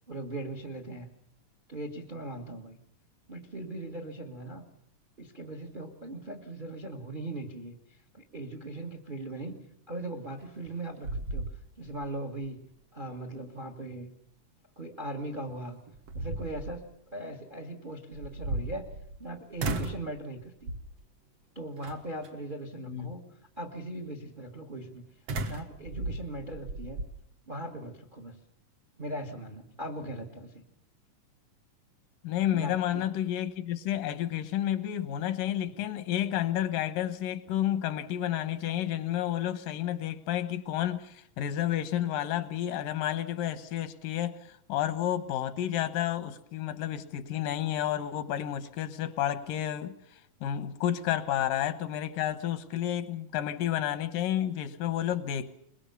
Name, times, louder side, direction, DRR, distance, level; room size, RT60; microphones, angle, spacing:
voice 1, 0.1-1.1 1.7-2.8 3.3-4.6 5.2-14.1 14.8-15.8 16.1-18.9 19.2-20.7 21.5-23.2 23.6-25.1 25.4-27.0 27.5-28.4 29.0-30.6 32.5-33.0, right 1 dB, 35° right, 5 dB, 0.7 m, -39 dB
sound 1, 10.4-10.8 11.0-12.1 12.4-12.5 15.2-15.3 15.9-16.8 18.1-19.2 19.6-20.1 20.7-21.0 21.8-22.3 25.3-27.1, right 2 dB, 55° right, 2.1 m, -35 dB
voice 2, 22.8-23.1 32.2-55.5, left 11 dB, 85° left, 11 dB, 2.8 m, -31 dB
22.5 x 21.5 x 6.9 m, 0.72 s
omnidirectional pair, 3.7 m